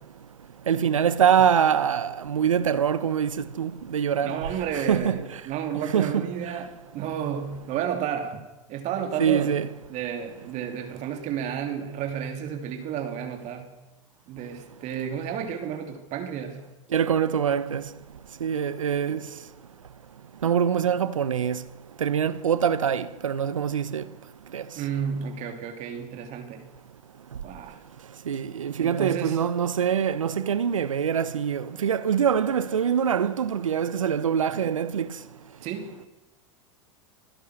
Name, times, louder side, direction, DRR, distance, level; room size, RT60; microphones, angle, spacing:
voice 1, 0.7-3.3 3.6-4.4 4.7-5.2 5.9-6.3 9.2-9.7 16.9-17.8 18.4-19.2 20.4-21.6 22.0-24.0 24.5-24.6 28.3-35.1, right 8 dB, 90° right, 1.0 m, -24 dB
voice 2, 4.2-9.6 9.9-13.7 14.3-16.6 19.1-19.2 24.7-26.6 27.4-27.8 28.8-29.4 35.6-35.9, right 8 dB, 45° right, 2.9 m, -32 dB
25.5 x 16.0 x 6.5 m
hypercardioid pair, 100°, 16 cm